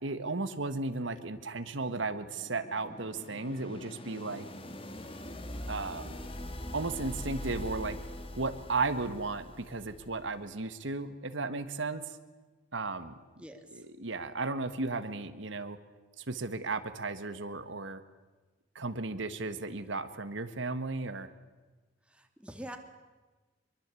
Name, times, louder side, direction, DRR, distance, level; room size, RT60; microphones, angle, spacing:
voice 1, 0.0-4.5 5.7-6.2 6.7-8.0 8.4-12.2 12.7-13.1 13.7-15.8 16.2-18.0 18.7-21.3, right 3 dB, 70° right, 10 dB, 1.5 m, -35 dB
sound 1, 1.7-10.4, left 1 dB, 25° left, 2.0 m, -43 dB
voice 2, 22.1-22.8, equal, 5° right, 5 dB, 2.2 m, -44 dB
24.5 x 23.0 x 8.4 m, 1.3 s
head